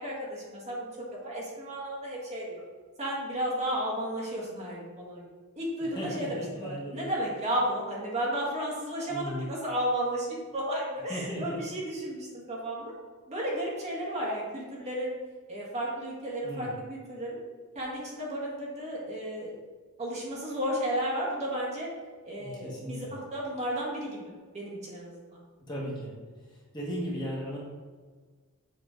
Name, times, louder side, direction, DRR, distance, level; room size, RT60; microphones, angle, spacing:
voice 1, 0.0-2.6 3.0-5.3 5.6-12.9 13.3-15.1 15.5-17.4 17.8-19.5 20.0-21.9 22.3-25.4, right 1 dB, 30° right, -4 dB, 1.7 m, -33 dB
voice 2, 5.8-7.1 9.1-9.5 11.1-11.6 16.4-16.7 22.4-23.1 25.7-26.1 26.5-27.6, equal, 20° left, -5 dB, 1.6 m, -36 dB
7.4 x 4.2 x 5.0 m, 1.5 s
head